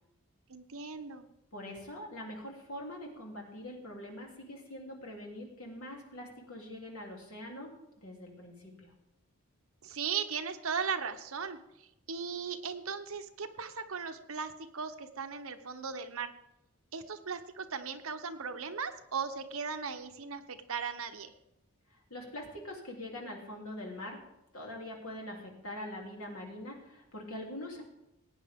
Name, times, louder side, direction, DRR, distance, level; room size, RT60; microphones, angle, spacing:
voice 1, 0.5-1.3 9.8-11.6 12.1-16.3 16.9-21.3, right 6 dB, 75° right, 8 dB, 0.9 m, -37 dB
voice 2, 1.5-7.7 8.0-8.9 21.9-24.2 24.5-27.8, left 1 dB, 75° left, -1 dB, 3.0 m, -43 dB
18.0 x 9.0 x 3.6 m, 0.87 s
head